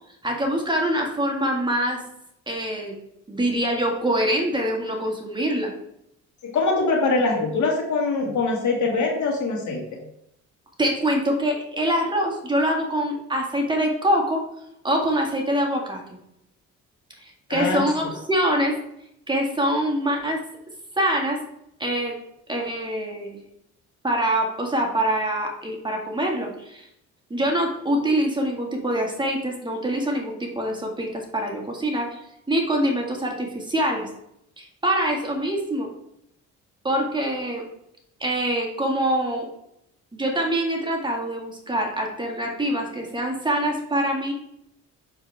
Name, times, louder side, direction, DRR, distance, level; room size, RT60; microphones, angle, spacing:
voice 1, 0.2-2.0 2.5-2.9 3.3-5.7 10.8-14.4 14.8-16.0 17.2-18.8 19.3-20.4 21.0-21.4 21.8-22.1 22.5-23.4 24.0-26.9 27.3-32.2 32.5-34.1 34.6-35.9 36.8-37.6 38.2-39.5 40.1-44.3, right 1 dB, 15° right, 0 dB, 1.9 m, -24 dB
voice 2, 6.4-9.8 17.5-17.8, left 3 dB, 70° left, 0 dB, 2.3 m, -23 dB
7.1 x 6.6 x 3.5 m, 0.77 s
cardioid pair, 90°, 30 cm